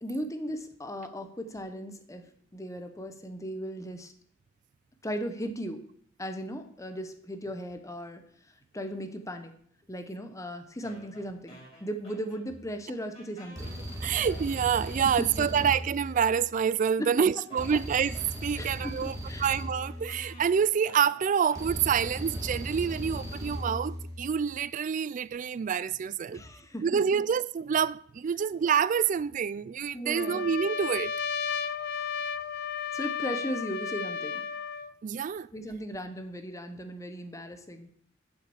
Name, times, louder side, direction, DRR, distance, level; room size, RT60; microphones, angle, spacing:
voice 1, 0.0-2.2 2.5-4.1 5.0-5.9 6.2-8.2 8.7-9.5 9.9-13.7 15.0-15.5 17.0-17.1 18.5-19.4 26.3-27.2 29.9-30.5 32.9-34.4 35.5-37.9, equal, 15° left, 1.0 m, -37 dB
sound 1, 10.8-12.7 12.9-16.2 16.9-17.0 17.5-22.9, equal, 30° left, 4.0 m, -53 dB
sound 2, 12.5-12.8 13.6-16.8 17.6-20.8 21.6-24.5, equal, 15° right, 1.8 m, -38 dB
voice 2, 14.0-26.4 26.8-31.1 35.0-35.5, right 7 dB, 40° right, 0.3 m, -27 dB
Trumpet, 30.1-34.9, left 6 dB, 55° left, 0.4 m, -33 dB
7.5 x 5.8 x 7.1 m
head